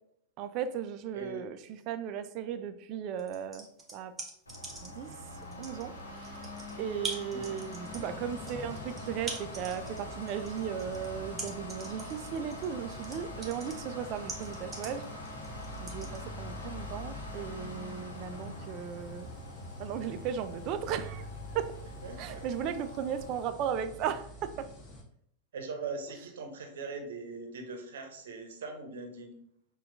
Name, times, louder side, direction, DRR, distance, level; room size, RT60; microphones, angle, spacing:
voice 1, 0.4-3.7 3.9-4.1 4.8-5.2 5.6-6.4 6.8-15.1 15.8-19.3 19.8-21.3 21.5-21.7 22.2-24.7, right 8 dB, 40° right, 11 dB, 0.3 m, -36 dB
voice 2, 1.1-1.4 7.3-7.6 22.0-22.5 25.5-29.3, right 4 dB, 60° right, 4 dB, 0.7 m, -41 dB
sound 1, 3.2-5.1 5.4-16.2, right 3 dB, 15° right, 0.9 m, -42 dB
sound 2, 4.5-23.4, left 1 dB, 80° left, 0.9 m, -45 dB
sound 3, 7.8-25.0, left 1 dB, 20° left, 0.9 m, -46 dB
5.8 x 2.3 x 2.5 m, 0.70 s
figure-of-eight pair, 90°, 0 cm